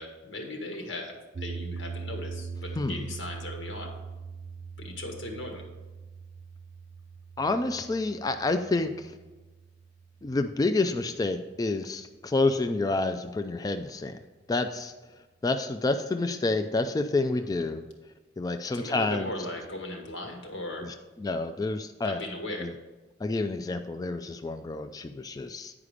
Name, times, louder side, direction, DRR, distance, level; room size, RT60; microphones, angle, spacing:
voice 1, 0.0-3.9 4.8-5.6 17.5-17.6 18.7-20.9 22.0-22.7, left 1 dB, 85° left, 2 dB, 1.6 m, -38 dB
sound 1, 1.3-11.6, right 5 dB, 45° right, 0.4 m, -42 dB
voice 2, 2.8-3.1 7.4-9.2 10.2-14.2 14.5-14.9 15.4-17.8 18.4-19.3 20.8-22.2 22.6-22.7 23.2-25.7, left 3 dB, 20° left, 8 dB, 0.3 m, -29 dB
9.7 x 4.9 x 5.0 m, 1.2 s
head